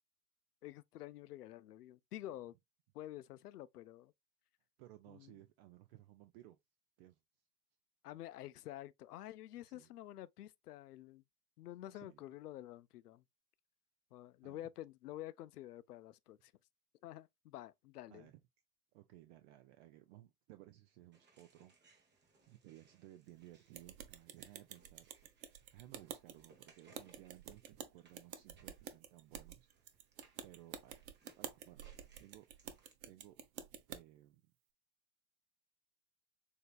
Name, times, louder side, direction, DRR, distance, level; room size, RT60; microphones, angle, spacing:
voice 1, 0.6-2.6 2.9-4.1 5.1-5.4 8.0-11.2 11.6-13.2 14.1-16.5 17.0-18.3, left 13 dB, 75° left, 0.6 m, -49 dB
voice 2, 4.8-6.6 7.0-7.2 9.7-9.9 11.9-12.2 14.4-14.7 18.1-18.4 18.9-21.7 22.1-25.1 25.5-30.0 30.4-31.1 31.4-31.8 32.2-32.5 33.1-33.4 33.9-34.4, right 15 dB, 45° right, 0.6 m, -59 dB
sound 1, 21.1-32.9, right 4 dB, 20° right, 1.3 m, -70 dB
sound 2, 23.7-34.0, right 9 dB, 65° right, 0.9 m, -50 dB
6.5 x 2.8 x 2.3 m
hypercardioid pair, 95°, 46 cm